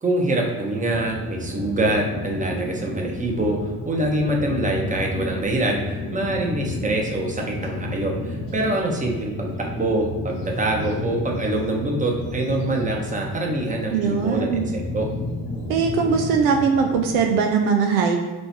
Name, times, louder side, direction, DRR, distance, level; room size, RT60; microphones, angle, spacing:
voice 1, 0.0-3.6 3.8-15.1, right 2 dB, 15° right, 0 dB, 0.9 m, -25 dB
sound 1, 0.9-17.4, left 2 dB, 70° left, 1.0 m, -32 dB
voice 2, 13.9-14.7 15.7-18.2, right 6 dB, 70° right, 3 dB, 0.6 m, -20 dB
4.3 x 3.0 x 2.9 m, 1.3 s
hypercardioid pair, 45°, 48 cm